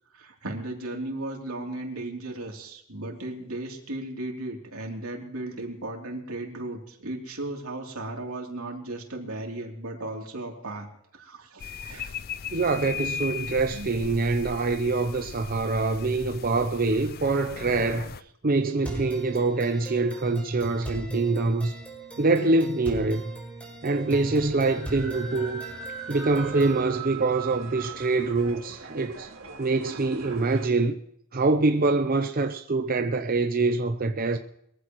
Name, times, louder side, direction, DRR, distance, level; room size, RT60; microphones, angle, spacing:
voice 1, 0.1-10.9 11.1-12.1 13.7-13.9, right 2 dB, 90° right, 3.2 m, -36 dB
sound 1, 11.6-18.2, left 7 dB, 45° left, 0.5 m, -38 dB
voice 2, 12.5-18.1 18.4-21.7 22.2-23.3 23.8-25.7 26.1-29.3 29.6-30.9 31.3-34.4, right 3 dB, 40° right, 0.7 m, -25 dB
sound 2, 18.8-26.8, right 2 dB, 5° left, 4.3 m, -38 dB
sound 3, 24.1-30.7, right 5 dB, 65° right, 2.4 m, -40 dB
22.5 x 15.0 x 3.1 m
head